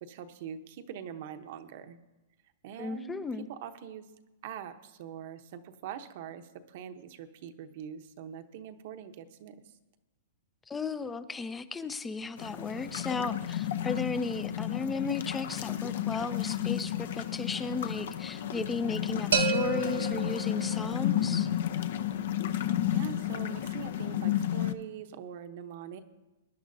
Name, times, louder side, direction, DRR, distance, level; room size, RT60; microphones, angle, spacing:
voice 1, 0.0-2.0 2.6-4.1 4.4-9.6 22.9-26.0, right 8 dB, 50° right, 8 dB, 0.9 m, -43 dB
voice 2, 2.8-3.5 10.7-21.5, left 4 dB, 10° left, 14 dB, 0.5 m, -35 dB
sound 1, 12.4-24.7, left 11 dB, 65° left, 0.7 m, -32 dB
sound 2, 19.3-21.2, right 7 dB, 80° right, 1.1 m, -31 dB
22.0 x 10.5 x 2.7 m, 1.1 s
hypercardioid pair, 150°, 0 cm